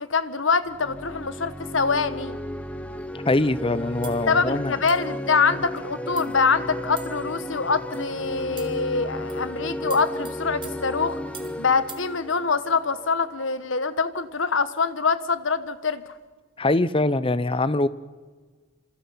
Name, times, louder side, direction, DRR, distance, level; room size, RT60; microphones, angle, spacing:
voice 1, 0.0-2.4 4.3-11.2 11.6-16.0, left 4 dB, 85° left, 13 dB, 1.3 m, -24 dB
sound 1, 0.6-13.3, left 1 dB, 5° left, 1.1 m, -34 dB
voice 2, 3.3-4.7 16.6-17.9, left 2 dB, 30° left, 16 dB, 0.7 m, -23 dB
sound 2, 4.0-4.3 4.9-5.1 5.8-5.9 6.2-6.4 7.0-7.3 7.9-8.1 8.6-8.9 9.3-9.5 9.9-11.6 11.9-12.1, right 7 dB, 25° right, 2.3 m, -44 dB
27.0 x 26.0 x 5.7 m, 1.4 s
head